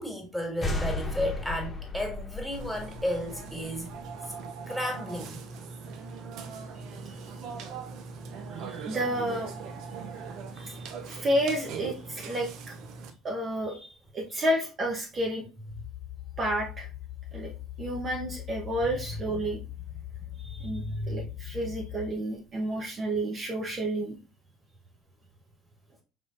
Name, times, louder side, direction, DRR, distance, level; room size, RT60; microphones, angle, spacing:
voice 1, 0.0-3.9 4.7-5.4 10.6-10.9 14.4-14.5 20.2-20.3 20.7-21.6, equal, ahead, 2.0 m, -33 dB
sound 1, 0.6-4.1, left 2 dB, 25° left, 1.1 m, -35 dB
Burping eructation, 2.5-13.1, right 5 dB, 60° right, 0.6 m, -40 dB
voice 2, 8.6-9.5 11.1-12.7 13.2-15.4 16.4-16.9 17.3-17.5 17.8-19.6 20.5-24.2, right 1 dB, 35° right, 1.0 m, -30 dB
sound 2, 15.7-22.1, left 14 dB, 75° left, 0.3 m, -41 dB
4.9 x 3.6 x 2.5 m
hypercardioid pair, 65°, 0 cm